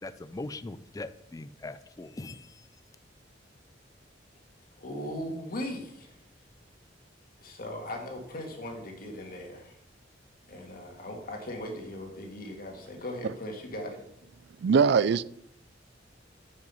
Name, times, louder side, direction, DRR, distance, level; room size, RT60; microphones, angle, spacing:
voice 1, 0.0-2.7, left 2 dB, 20° left, 13 dB, 0.4 m, -41 dB
voice 2, 4.8-6.1 7.4-9.8 10.5-14.0, left 1 dB, 50° left, 2 dB, 1.9 m, -38 dB
voice 3, 14.6-15.2, right 5 dB, 65° right, 18 dB, 0.4 m, -21 dB
9.1 x 5.4 x 5.5 m, 0.74 s
head